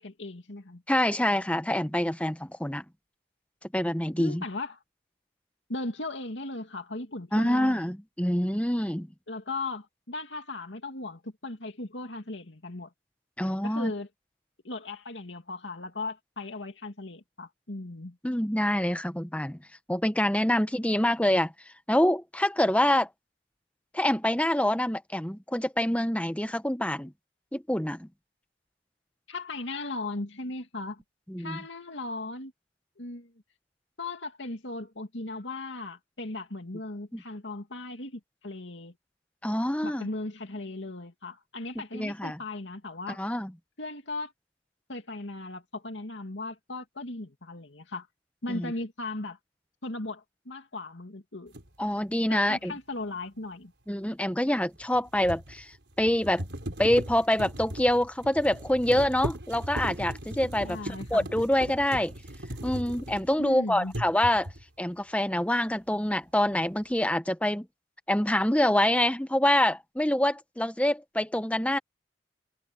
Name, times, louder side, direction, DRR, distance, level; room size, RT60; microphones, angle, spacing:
voice 1, 0.0-0.8 4.2-4.8 5.7-7.9 9.3-12.9 13.6-14.1 14.6-18.2 29.3-31.0 31.4-32.5 33.0-33.3 34.0-38.9 39.8-43.2 43.8-44.3 44.9-48.1 48.4-49.4 49.8-51.6 52.3-53.7 60.6-61.3 63.4-63.9, left 2 dB, 75° left, 2.4 m, -37 dB
voice 2, 0.9-2.8 3.7-4.4 7.3-9.1 13.4-13.9 18.2-19.6 19.9-21.5 21.9-23.1 23.9-27.1 27.5-28.1 31.3-31.6 37.1-37.2 39.4-40.1 41.9-42.4 43.2-43.5 48.5-48.7 51.8-52.7 53.9-55.7 56.0-56.4 56.8-60.8 61.1-62.1 62.6-64.5 64.8-67.6 68.1-71.8, left 1 dB, 5° left, 1.0 m, -26 dB
sound 1, 51.5-51.7 54.8-63.5 63.9-64.7, right 1 dB, 65° right, 4.8 m, -38 dB
head